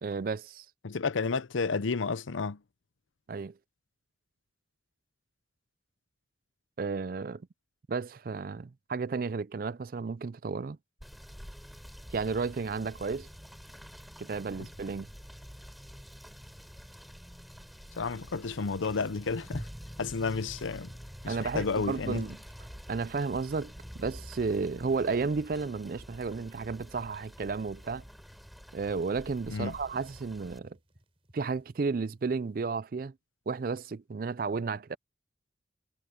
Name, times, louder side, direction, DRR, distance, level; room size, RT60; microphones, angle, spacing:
voice 1, 0.0-0.7 3.3-3.5 6.8-7.4 7.9-10.8 12.1-13.3 14.2-15.1 21.3-22.4 22.9-28.0 28.7-30.8 31.3-33.1 33.5-35.0, right 4 dB, 45° right, 0.4 m, -33 dB
voice 2, 0.8-2.6 18.0-19.7 20.0-20.9 21.2-22.3 29.5-29.8, left 4 dB, 90° left, 0.7 m, -31 dB
Rain / Motor vehicle (road), 11.0-30.6, equal, ahead, 3.3 m, -47 dB
sound 1, 17.9-32.6, equal, 30° right, 4.4 m, -68 dB
head